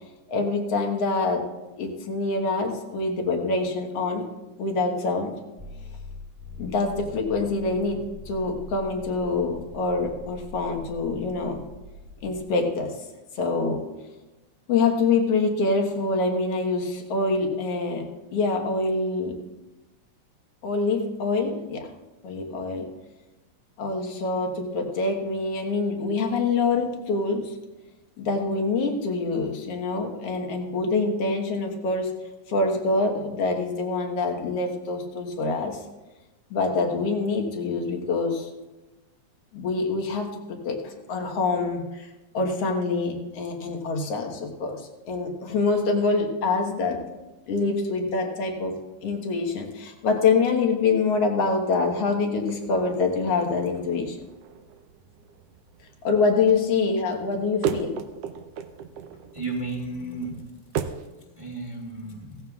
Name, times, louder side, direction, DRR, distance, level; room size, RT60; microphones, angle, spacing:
voice 1, 0.3-1.4 1.8-4.3 4.6-5.3 6.6-11.6 12.2-12.9 13.4-13.8 14.7-18.1 18.3-19.3 20.6-21.9 22.2-22.9 23.8-27.5 28.2-32.1 32.5-35.8 36.5-38.5 39.5-40.3 40.7-44.8 45.1-47.0 47.5-48.7 49.0-54.2 56.0-57.9, left 3 dB, 60° left, 3 dB, 2.1 m, -25 dB
sound 1, 5.6-12.4, left 3 dB, 35° right, 0.5 m, -43 dB
sound 2, 52.3-61.1, right 7 dB, 80° right, 1.4 m, -37 dB
voice 2, 59.3-60.4 61.0-62.4, right 2 dB, 15° right, -1 dB, 1.3 m, -34 dB
17.0 x 15.0 x 2.4 m, 1.1 s
omnidirectional pair, 3.5 m